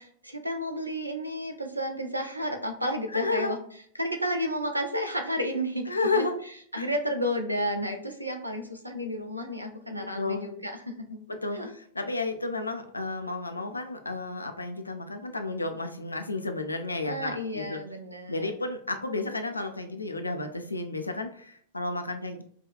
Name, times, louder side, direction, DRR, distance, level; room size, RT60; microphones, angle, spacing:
voice 1, 0.0-3.6 4.0-5.8 6.1-6.3 6.7-11.2 11.5-11.7 17.1-18.5, equal, 85° right, 5 dB, 0.6 m, -32 dB
voice 2, 3.1-3.5 5.9-6.4 6.7-6.9 9.9-10.5 11.3-17.8 18.3-22.4, left 3 dB, 80° left, 6 dB, 0.4 m, -32 dB
4.9 x 2.3 x 2.3 m, 0.62 s
figure-of-eight pair, 90°, 0 cm